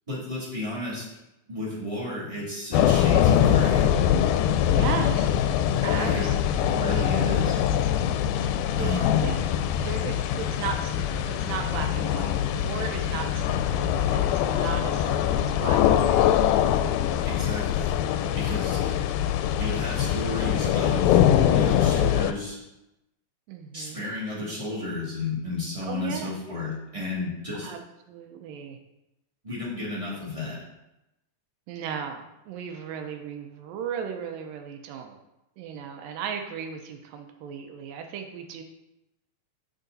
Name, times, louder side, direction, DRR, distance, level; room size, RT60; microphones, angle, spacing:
voice 1, 0.1-1.1 1.5-3.9 6.0-7.5 8.8-9.3 17.2-17.9 18.3-19.0 19.6-21.2 21.5-22.6 23.7-27.7 29.4-30.6, left 2 dB, 10° right, -7 dB, 1.9 m, -32 dB
sound 1, 2.7-22.3, left 10 dB, 85° left, 2.3 m, -23 dB
voice 2, 4.7-5.4 5.8-6.4 6.6-7.2 8.8-9.4 9.8-16.3 23.5-24.0 25.8-26.3 27.6-28.8 30.2-30.3 31.7-35.2 35.6-38.6, right 7 dB, 80° right, 5 dB, 2.2 m, -36 dB
9.1 x 4.9 x 4.0 m, 0.91 s
omnidirectional pair, 4.3 m